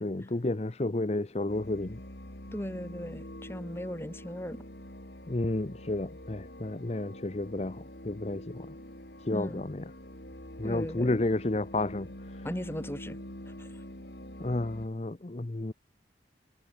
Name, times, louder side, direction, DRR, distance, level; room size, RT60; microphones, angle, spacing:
voice 1, 0.0-2.0 5.3-8.7 9.2-9.8 10.6-12.5 14.4-15.7, left 2 dB, 35° left, 0.7 m, -31 dB
sound 1, 1.5-14.9, left 1 dB, 65° left, 6.2 m, -45 dB
voice 2, 2.5-4.6 9.3-9.7 10.6-11.1 12.4-13.2 13.5-13.8, equal, 15° left, 2.4 m, -38 dB
head